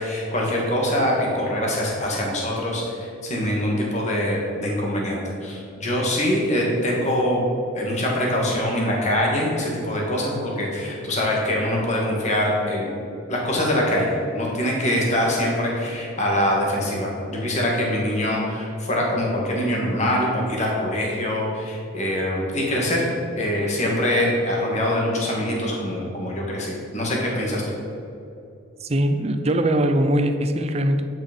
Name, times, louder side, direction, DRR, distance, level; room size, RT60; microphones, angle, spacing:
voice 1, 0.0-7.5 7.7-13.0 13.3-23.0 23.4-27.6, left 1 dB, 35° left, -2 dB, 2.0 m, -24 dB
voice 2, 28.8-31.0, right 1 dB, 30° right, 7 dB, 0.5 m, -21 dB
10.5 x 6.2 x 5.3 m, 2.7 s
head